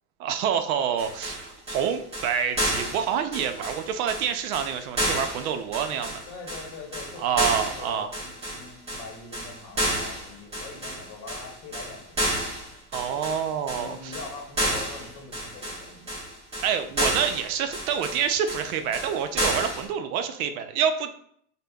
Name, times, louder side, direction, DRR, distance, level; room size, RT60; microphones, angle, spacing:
voice 1, 0.2-6.2 7.2-8.1 12.9-14.1 16.6-21.2, right 8 dB, 75° right, 8 dB, 0.6 m, -27 dB
sound 1, 1.0-19.8, right 1 dB, 15° right, 0.9 m, -31 dB
voice 2, 6.3-12.2 13.7-16.3, left 4 dB, 40° left, 0 dB, 0.9 m, -43 dB
5.1 x 2.1 x 2.2 m, 0.66 s
supercardioid pair, 165°, 43 cm